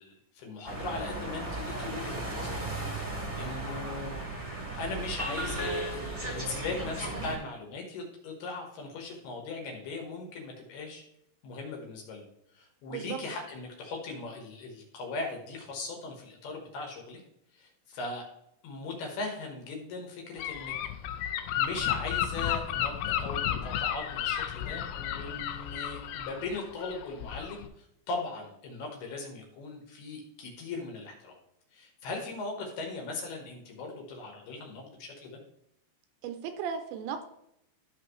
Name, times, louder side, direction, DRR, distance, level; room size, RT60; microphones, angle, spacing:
voice 1, 0.0-2.6 3.0-4.2 4.8-11.0 11.4-12.2 12.5-17.2 17.5-18.2 18.6-20.7 21.2-31.4 31.7-35.4, left 3 dB, 65° left, 1 dB, 3.0 m, -39 dB
sound 1, 0.6-7.4, right 2 dB, 25° right, 1.0 m, -35 dB
Gull seagull / Wind, 20.4-27.7, left 10 dB, 90° left, 2.4 m, -33 dB
voice 2, 36.2-37.3, right 7 dB, 80° right, 7 dB, 2.7 m, -35 dB
13.0 x 5.9 x 3.1 m, 0.78 s
omnidirectional pair, 5.4 m